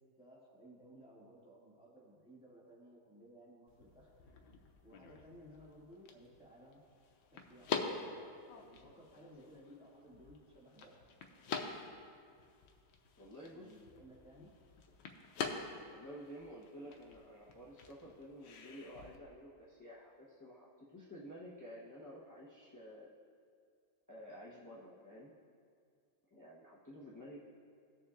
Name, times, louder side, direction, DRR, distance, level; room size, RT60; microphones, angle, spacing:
voice 1, 0.0-4.1 4.8-6.8 7.3-10.9 13.5-14.5, equal, 5° right, -8 dB, 2.0 m, -59 dB
sound 1, 3.7-19.2, left 5 dB, 75° left, 1.5 m, -46 dB
voice 2, 13.2-13.7 15.9-23.1 24.1-25.3 26.3-27.4, equal, 20° left, -6 dB, 0.5 m, -52 dB
18.5 x 7.0 x 2.5 m, 2.2 s
omnidirectional pair, 2.2 m